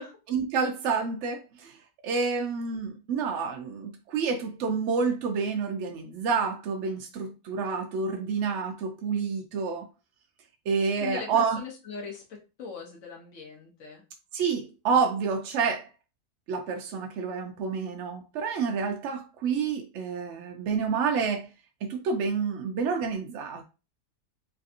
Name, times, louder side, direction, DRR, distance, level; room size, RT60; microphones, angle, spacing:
voice 1, 0.3-1.8 2.0-9.9 10.7-11.6 14.3-15.9 16.5-21.5 21.8-23.6, right 5 dB, 80° right, 0.6 m, -28 dB
voice 2, 11.0-14.0, left 5 dB, 55° left, 1.0 m, -40 dB
3.3 x 2.6 x 2.4 m
omnidirectional pair, 1.8 m